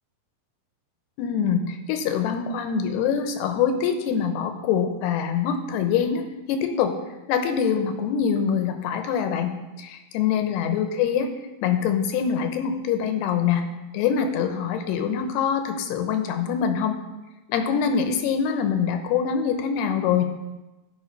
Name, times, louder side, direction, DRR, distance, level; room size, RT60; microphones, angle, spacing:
voice 1, 1.2-7.0 7.3-9.5 9.8-11.3 11.6-13.6 13.9-17.0 17.5-20.2, left 7 dB, 85° left, 7 dB, 2.9 m, -24 dB
12.5 x 5.0 x 5.4 m, 1.1 s
omnidirectional pair, 4.7 m